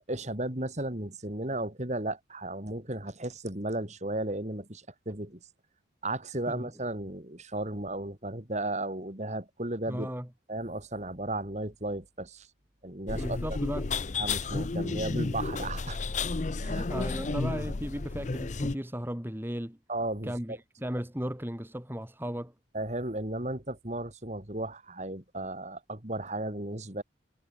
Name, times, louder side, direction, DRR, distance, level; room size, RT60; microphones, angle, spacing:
voice 1, 0.1-5.4 6.0-10.1 10.5-12.5 12.8-13.6 14.2-16.0 16.6-16.9 19.9-20.6 22.7-27.0, right 1 dB, 35° right, 3.1 m, -35 dB
voice 2, 9.9-10.3 13.1-13.9 16.7-19.8 20.2-22.5, equal, 10° right, 2.4 m, -36 dB
sound 1, 13.1-18.7, left 3 dB, 40° left, 0.6 m, -32 dB
head